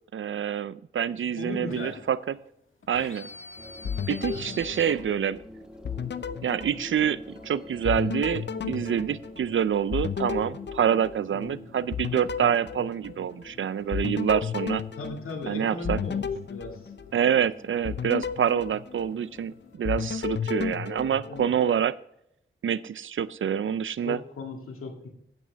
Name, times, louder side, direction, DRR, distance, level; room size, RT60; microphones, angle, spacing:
voice 1, 0.1-2.3 2.9-3.3 4.1-5.4 6.4-14.8 15.5-16.0 17.1-21.9 22.6-24.2, right 8 dB, 65° right, 17 dB, 0.5 m, -27 dB
sound 1, 1.1-19.8, left 3 dB, 70° left, 1.8 m, -51 dB
voice 2, 1.4-2.0 4.3-4.5 11.3-11.7 15.0-16.8 21.2-21.5 24.0-25.1, left 3 dB, 90° left, 2 dB, 2.0 m, -37 dB
sound 2, 3.6-20.0, left 1 dB, 5° right, 1.4 m, -49 dB
sound 3, 3.8-5.5 5.8-7.5 7.8-11.5 11.9-13.5 13.9-17.4 17.8-19.5 19.8-21.8, left 6 dB, 55° left, 0.6 m, -33 dB
10.5 x 8.6 x 3.5 m, 0.75 s
cardioid pair, 50°, 21 cm